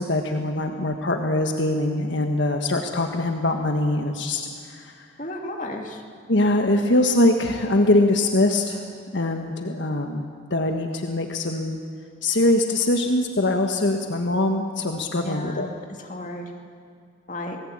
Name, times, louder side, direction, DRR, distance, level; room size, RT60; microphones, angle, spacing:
voice 1, 0.0-5.0 6.3-8.9 9.1-11.8 12.2-15.7, left 1 dB, 70° left, 4 dB, 1.5 m, -23 dB
voice 2, 5.2-6.0 15.2-15.7 16.0-16.5 17.3-17.6, left 1 dB, 40° left, 1 dB, 2.7 m, -33 dB
27.0 x 19.5 x 8.8 m, 2.3 s
head